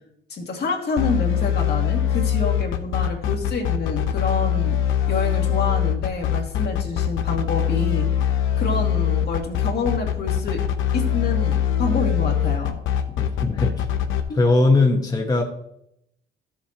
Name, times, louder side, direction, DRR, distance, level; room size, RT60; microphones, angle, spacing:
voice 1, 0.3-4.8 5.1-8.2 8.6-10.6 10.9-12.8 14.3-14.4, left 3 dB, 55° left, 1 dB, 2.2 m, -27 dB
sound 1, 1.0-14.2, left 9 dB, 90° left, 0.9 m, -22 dB
voice 2, 13.2-13.8 14.3-15.4, left 3 dB, 20° left, 0 dB, 1.3 m, -19 dB
13.0 x 7.3 x 3.0 m, 0.77 s
cardioid pair, 90°, 20 cm